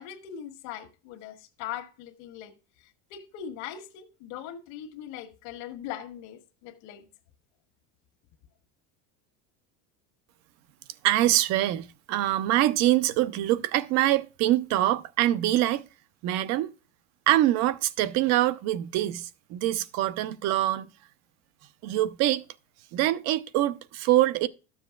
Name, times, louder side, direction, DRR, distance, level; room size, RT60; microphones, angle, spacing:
voice 1, 0.0-2.5 3.1-7.0, left 10 dB, 70° left, 1.5 m, -40 dB
voice 2, 11.0-15.9 16.2-16.7 17.3-20.9 21.8-22.4 22.9-24.5, right 14 dB, 50° right, 0.6 m, -24 dB
13.0 x 7.2 x 2.3 m
cardioid pair, 170°, 36 cm